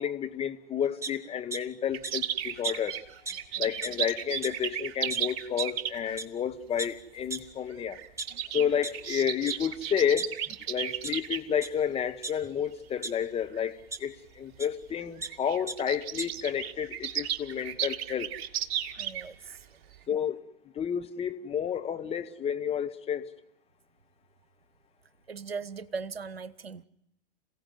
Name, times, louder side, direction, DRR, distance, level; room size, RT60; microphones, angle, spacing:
voice 1, 0.0-3.1 3.6-8.0 8.5-10.3 10.7-18.4 20.1-20.5 20.7-23.3, left 8 dB, 20° left, 1.2 m, -31 dB
sound 1, 1.0-1.6 2.0-2.1 2.6-2.7 3.3-3.4 3.7-4.0 4.4-4.5 5.1-5.2 5.6-5.7 6.2-6.3 6.8-6.9 7.3-7.4 8.0-8.9 9.5-9.6 9.9-10.6 11.0-11.1 11.6-11.7 12.2-13.1 13.9-14.0 14.6-14.7 15.0-15.3 15.7-15.8 16.0-16.3, right 3 dB, 10° right, 1.2 m, -36 dB
sound 2, 1.9-6.2 7.2-7.4 7.7-11.4 12.1-12.4 13.0-13.1 13.4-13.6 14.5-14.6 14.9-15.0 15.2-19.6 19.9-20.0, right 10 dB, 40° right, 1.4 m, -34 dB
voice 2, 19.0-19.8 25.3-26.8, right 5 dB, 85° right, 0.8 m, -39 dB
27.5 x 16.5 x 9.3 m
figure-of-eight pair, 100°, 30 cm